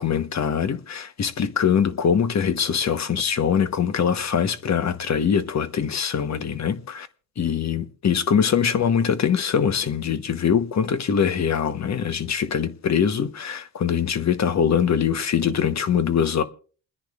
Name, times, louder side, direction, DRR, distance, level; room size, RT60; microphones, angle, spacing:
voice 1, 0.0-7.1 7.4-16.4, left 7 dB, 45° left, 1.1 m, -23 dB
29.0 x 10.0 x 2.4 m
cardioid pair, 85°, 39 cm